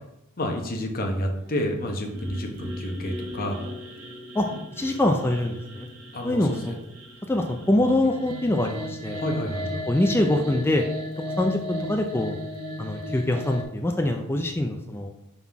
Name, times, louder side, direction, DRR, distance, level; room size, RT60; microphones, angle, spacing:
voice 1, 0.4-3.7 6.1-6.8 9.1-9.9, equal, 40° left, 3 dB, 0.9 m, -29 dB
sound 1, 1.7-13.6, left 1 dB, 75° right, 1.3 m, -36 dB
voice 2, 4.8-5.9 6.2-6.7 7.3-9.2 9.9-10.8 11.4-12.3 12.8-15.1, left 1 dB, 10° left, 3 dB, 0.4 m, -24 dB
5.6 x 3.9 x 4.6 m, 0.84 s
head